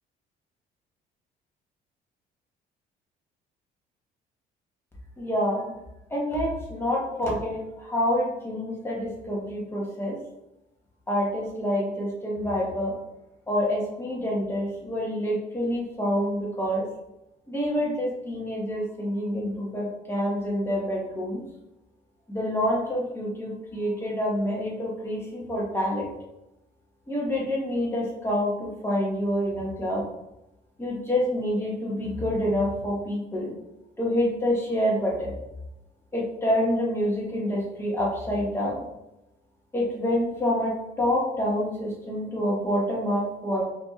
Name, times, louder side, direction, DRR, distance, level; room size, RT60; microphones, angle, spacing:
voice 1, 5.2-5.7 6.1-10.2 11.1-12.9 13.5-16.9 17.5-21.4 22.3-26.1 27.1-30.0 30.8-33.5 34.0-35.3 36.1-38.8 39.7-43.6, equal, 15° left, -4 dB, 1.3 m, -27 dB
4.3 x 2.9 x 3.1 m, 0.91 s
cardioid pair, 110°, 17 cm